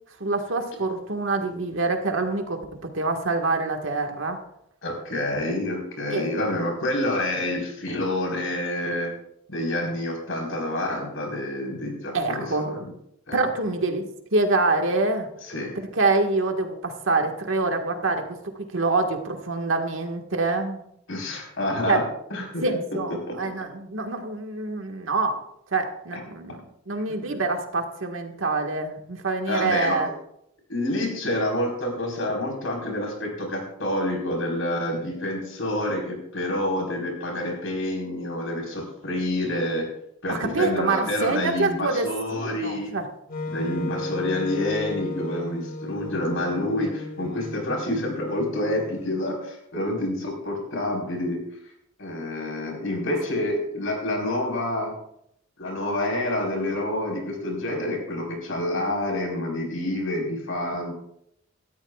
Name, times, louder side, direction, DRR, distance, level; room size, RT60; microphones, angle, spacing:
voice 1, 0.2-4.4 6.1-6.3 12.1-12.7 13.3-15.3 15.9-20.9 21.9-22.0 22.3-25.4 25.7-26.6 26.9-30.1 40.3-43.1, right 3 dB, 75° right, 4 dB, 1.7 m, -26 dB
voice 2, 4.8-9.1 9.5-12.9 13.3-13.4 15.5-15.8 21.1-22.0 22.3-22.6 23.3-23.4 27.2-27.4 29.5-30.0 30.7-39.9 40.2-42.9 43.5-51.4 52.0-54.9 55.6-60.9, left 1 dB, 85° left, 0 dB, 4.4 m, -28 dB
Wind instrument woodwind instrument, 43.3-49.3, left 3 dB, 45° left, 1.7 m, -35 dB
18.5 x 13.0 x 2.4 m, 0.75 s
head